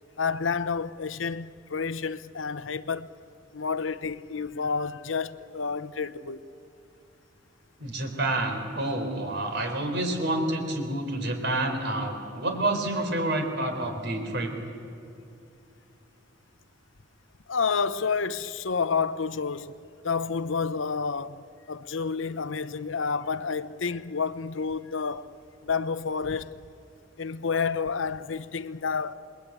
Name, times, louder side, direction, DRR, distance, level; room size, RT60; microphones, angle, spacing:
voice 1, 0.2-3.1 3.5-6.4 17.5-19.7 20.0-21.4 21.7-25.3 25.6-26.5 27.2-29.1, left 5 dB, 75° left, 0.8 m, -29 dB
voice 2, 7.8-14.6, right 1 dB, 60° right, 4.0 m, -28 dB
28.5 x 21.0 x 8.8 m
head